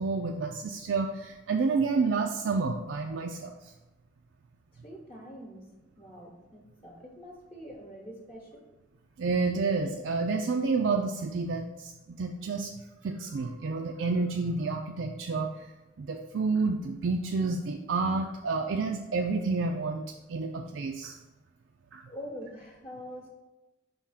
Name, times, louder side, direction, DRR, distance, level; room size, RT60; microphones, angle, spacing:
voice 1, 0.0-3.7 9.2-12.7 13.0-15.7 16.0-20.0 20.3-21.2 21.9-22.0, right 4 dB, 80° right, 3 dB, 0.4 m, -29 dB
voice 2, 4.7-5.7 6.0-8.6 22.1-23.3, equal, 35° left, -2 dB, 0.9 m, -44 dB
5.4 x 3.6 x 5.7 m, 1.0 s
head